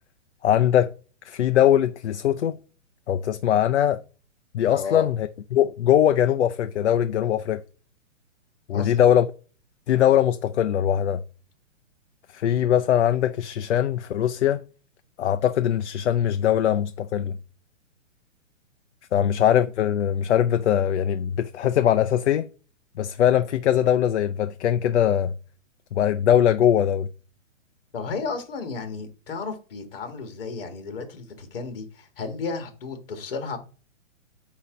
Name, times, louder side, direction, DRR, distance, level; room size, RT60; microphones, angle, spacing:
voice 1, 0.4-0.9 1.2-2.6 3.1-4.0 4.5-7.6 8.7-9.3 9.9-11.2 12.3-14.6 15.2-17.3 19.1-22.5 23.0-25.3 25.9-27.1, left 10 dB, 60° left, 0.5 m, -21 dB
voice 2, 4.7-5.1 8.7-9.1 19.2-19.3 27.9-33.6, left 4 dB, 45° left, 1.7 m, -33 dB
8.3 x 2.8 x 5.0 m
hypercardioid pair, 175°, 38 cm